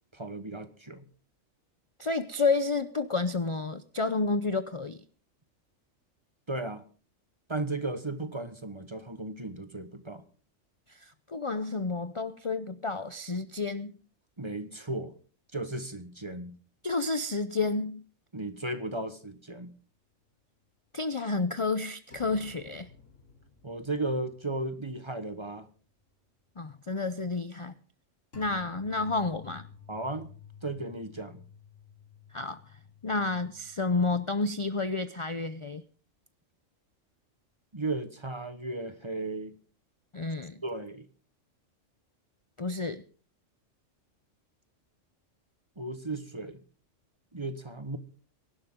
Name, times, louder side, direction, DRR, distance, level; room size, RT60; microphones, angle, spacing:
voice 1, 0.1-1.1 6.5-6.8 7.5-10.2 14.4-15.1 15.5-16.6 18.3-19.7 23.6-25.7 29.9-30.3 30.6-31.4 37.7-39.5 40.6-41.1 45.8-46.6 47.3-48.0, right 2 dB, 25° right, 10 dB, 1.2 m, -35 dB
voice 2, 2.0-5.0 10.9-14.0 16.8-18.0 20.9-22.9 26.6-27.7 28.3-29.7 32.3-32.6 33.0-35.8 40.1-40.6 42.6-43.0, left 3 dB, 35° left, 11 dB, 0.6 m, -30 dB
sound 1, 22.1-25.2 25.6-25.7 28.3-34.4, left 6 dB, 65° left, 3.7 m, -53 dB
23.0 x 11.5 x 3.7 m, 0.40 s
omnidirectional pair, 1.4 m